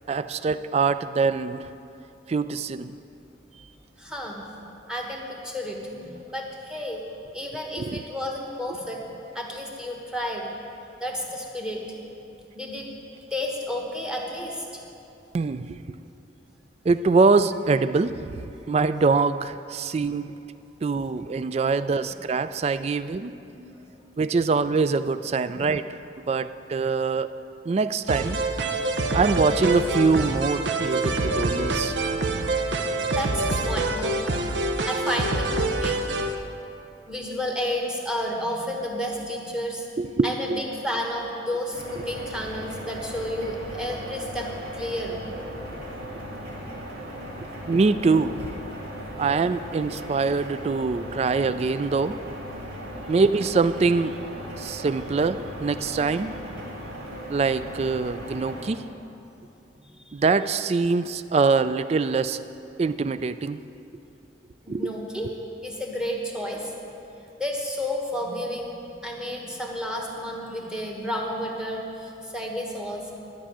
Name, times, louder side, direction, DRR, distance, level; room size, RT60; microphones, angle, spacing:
voice 1, 0.1-1.7 2.3-2.9 7.8-8.0 15.3-15.8 16.9-18.3 18.7-20.3 20.8-23.3 24.2-27.3 27.7-28.4 29.1-32.0 40.0-40.6 47.7-48.5 49.2-52.2 53.1-54.1 54.6-56.6 57.3-58.9 60.1-62.4 62.8-63.6 64.7-64.9, right 4 dB, 35° right, 13 dB, 0.3 m, -24 dB
voice 2, 4.0-4.4 4.9-7.0 7.3-10.5 11.0-11.8 12.5-12.9 13.3-14.6 23.1-23.2 23.5-23.8 25.5-25.7 32.6-34.2 34.9-36.0 37.1-39.8 40.2-45.3 49.1-49.2 64.7-65.3 65.6-66.7 67.4-73.1, equal, 5° right, 0 dB, 1.3 m, -31 dB
sound 1, 28.1-36.3, right 2 dB, 80° right, 0.7 m, -26 dB
sound 2, 41.7-58.6, equal, 60° right, 2.3 m, -37 dB
11.5 x 6.1 x 8.7 m, 2.8 s
head